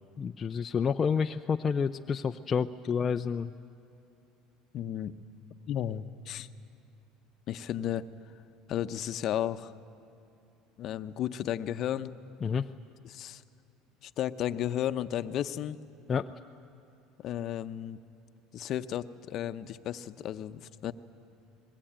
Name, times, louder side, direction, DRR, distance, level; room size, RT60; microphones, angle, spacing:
voice 1, 0.2-3.5 12.4-12.7 16.1-16.3, left 6 dB, 30° left, 5 dB, 0.5 m, -29 dB
voice 2, 4.7-5.1 5.7-6.5 7.5-8.1 8.7-9.7 10.8-12.2 13.0-13.4 14.0-15.8 17.2-18.0 18.5-20.9, left 11 dB, 50° left, 10 dB, 0.8 m, -33 dB
24.0 x 21.5 x 8.9 m, 2.8 s
supercardioid pair, 105°, 0 cm